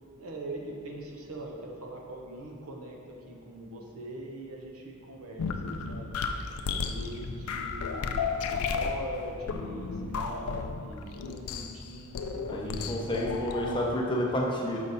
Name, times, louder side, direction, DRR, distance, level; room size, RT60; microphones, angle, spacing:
voice 1, 0.2-6.1 6.7-8.0 8.5-13.8, right 1 dB, 75° right, 0 dB, 0.9 m, -42 dB
sound 1, 5.4-13.9, left 5 dB, 75° left, 0.4 m, -33 dB
voice 2, 12.5-14.8, equal, 20° left, -2 dB, 0.7 m, -30 dB
6.5 x 5.0 x 4.1 m, 2.5 s
head